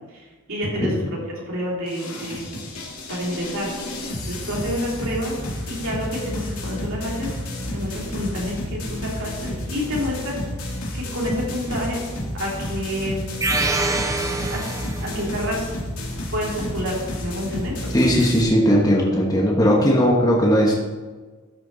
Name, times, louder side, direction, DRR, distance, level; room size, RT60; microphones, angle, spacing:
voice 1, 0.1-1.2 1.5-2.5 3.1-3.7 4.3-5.4 5.7-7.3 7.7-10.3 10.9-12.0 12.3-13.2 14.5-14.6 15.0-15.7 16.3-18.0, equal, 65° right, -3 dB, 3.1 m, -28 dB
sound 1, 1.9-18.4, left 1 dB, 75° left, 2.3 m, -31 dB
sound 2, 13.4-15.3, right 3 dB, 15° right, 0.6 m, -25 dB
voice 2, 17.9-20.8, equal, 15° left, -3 dB, 1.2 m, -18 dB
13.0 x 6.2 x 4.1 m, 1.3 s
head